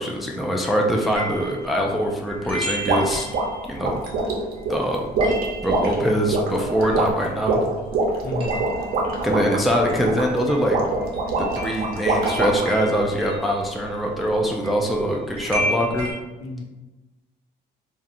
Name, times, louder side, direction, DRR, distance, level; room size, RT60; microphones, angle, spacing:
voice 1, 0.0-3.3 3.7-4.0 4.7-5.1 5.6-7.6 9.2-10.8 11.4-16.1, equal, ahead, 0 dB, 0.3 m, -23 dB
sound 1, 1.0-7.6 7.9-16.1, equal, 30° right, 0.8 m, -34 dB
sound 2, 2.9-12.8, right 2 dB, 65° right, 0.6 m, -24 dB
voice 2, 8.2-8.6 16.4-16.6, left 2 dB, 75° left, -4 dB, 1.0 m, -31 dB
2.8 x 2.4 x 2.5 m, 1.1 s
cardioid pair, 110°, 17 cm